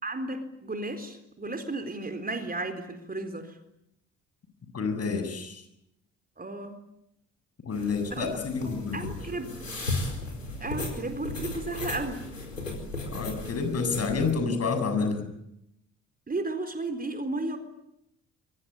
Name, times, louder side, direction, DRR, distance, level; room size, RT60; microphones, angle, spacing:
voice 1, 0.0-3.6 6.4-6.8 7.8-8.3 8.6-9.5 10.6-12.2 16.3-17.6, right 2 dB, 25° right, 8 dB, 4.2 m, -34 dB
voice 2, 4.7-5.6 7.6-9.1 13.1-15.2, left 4 dB, 40° left, 7 dB, 7.8 m, -29 dB
sound 1, 7.7-14.3, left 2 dB, 90° left, 4.7 m, -36 dB
26.5 x 24.0 x 9.0 m, 0.81 s
figure-of-eight pair, 50°, 38 cm